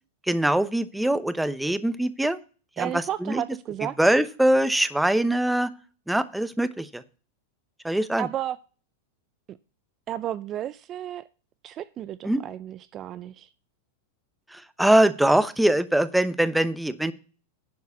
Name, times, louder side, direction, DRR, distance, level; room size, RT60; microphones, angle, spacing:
voice 1, 0.3-2.4 2.8-3.4 4.0-5.7 6.1-7.0 7.8-8.3 12.2-12.4 14.5-17.1, right 1 dB, 5° right, 0.8 m, -22 dB
voice 2, 2.8-4.0 8.2-8.6 9.5-9.6 10.1-11.2 11.6-13.5, right 11 dB, 35° right, 0.4 m, -32 dB
11.0 x 4.6 x 7.0 m
hypercardioid pair, 110°, 0 cm